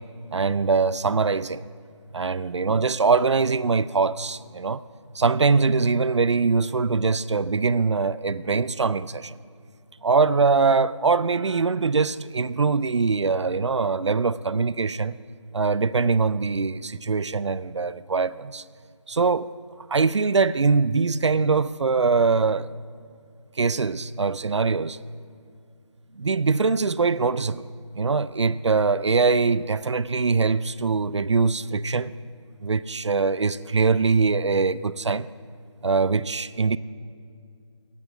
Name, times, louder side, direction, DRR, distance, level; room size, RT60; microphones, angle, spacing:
voice 1, 0.3-1.6 2.1-4.8 5.1-9.4 10.0-15.2 15.5-18.6 19.1-19.5 19.9-22.7 23.6-25.0 26.2-27.6 27.9-32.1 32.6-35.3 35.8-36.8, right 4 dB, 65° right, 0.5 m, -22 dB
17.5 x 7.9 x 5.0 m
figure-of-eight pair, 165°, 16 cm